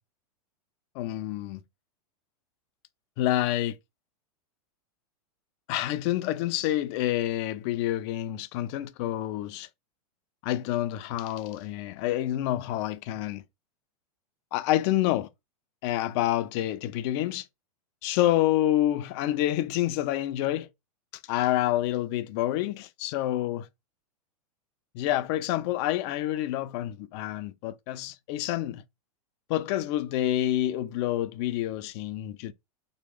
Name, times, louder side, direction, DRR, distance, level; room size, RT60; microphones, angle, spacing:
voice 1, 1.0-1.6 3.2-3.8 5.7-9.7 10.4-13.4 14.5-15.3 15.8-17.5 18.0-20.7 21.3-23.7 24.9-28.8 29.5-32.5, left 13 dB, 45° left, 0.4 m, -28 dB
2.9 x 2.0 x 3.4 m
hypercardioid pair, 120°, 19 cm